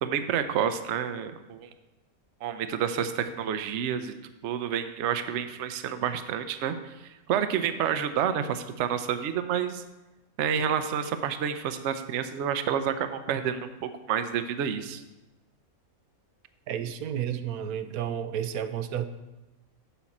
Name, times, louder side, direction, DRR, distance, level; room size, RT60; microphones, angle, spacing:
voice 1, 0.0-1.7 2.4-4.1 4.4-7.0 7.3-9.8 10.4-15.0, right 8 dB, 60° right, 10 dB, 0.8 m, -29 dB
voice 2, 16.7-19.1, right 9 dB, 85° right, 10 dB, 1.1 m, -31 dB
7.2 x 5.5 x 7.1 m, 1.0 s
omnidirectional pair, 1.5 m